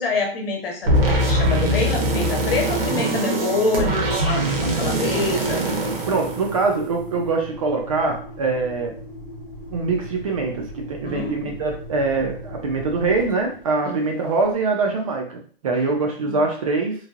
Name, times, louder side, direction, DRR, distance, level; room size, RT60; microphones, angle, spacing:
voice 1, 0.0-5.6 11.0-11.6 13.8-14.1 16.2-16.4, left 3 dB, 70° left, 1 dB, 1.1 m, -26 dB
Engine, 0.8-14.8, equal, 25° left, 1.2 m, -39 dB
sound 1, 0.9-7.0, right 1 dB, 70° right, 1.0 m, -22 dB
voice 2, 6.1-8.9 9.7-16.9, right 3 dB, 35° right, 2 dB, 0.5 m, -23 dB
3.1 x 2.7 x 2.4 m, 0.44 s
hypercardioid pair, 170°, 30 cm